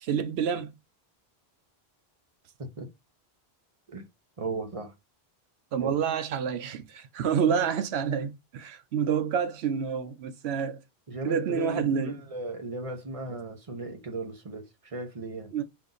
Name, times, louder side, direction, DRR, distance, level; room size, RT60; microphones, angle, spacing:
voice 1, 0.0-0.7 5.7-10.8 11.2-12.2 15.5-15.6, right 7 dB, 85° right, 0.9 m, -28 dB
voice 2, 4.4-4.9 5.8-6.0 11.1-15.5, right 3 dB, 35° right, 1.0 m, -36 dB
4.3 x 2.6 x 3.9 m
omnidirectional pair, 1.0 m